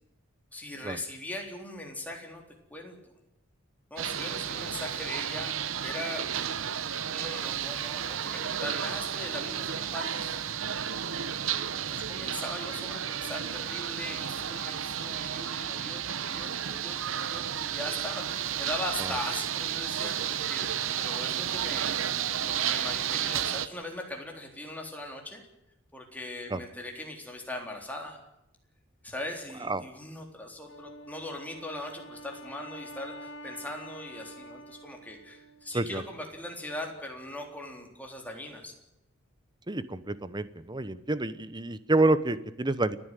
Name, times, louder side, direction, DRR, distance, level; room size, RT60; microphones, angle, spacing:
voice 1, 0.5-2.4 2.7-3.0 3.9-5.5 5.8-6.3 7.1-10.9 11.8-25.4 25.9-28.2 29.0-38.7, left 1 dB, 10° left, 1 dB, 3.8 m, -40 dB
sound 1, 4.0-23.7, right 9 dB, 70° right, 0.9 m, -32 dB
Wind instrument woodwind instrument, 30.7-36.1, equal, 60° left, 2.7 m, -47 dB
voice 2, 35.7-36.0 39.7-43.0, right 2 dB, 20° right, 14 dB, 0.9 m, -28 dB
29.5 x 10.0 x 9.2 m, 0.84 s
head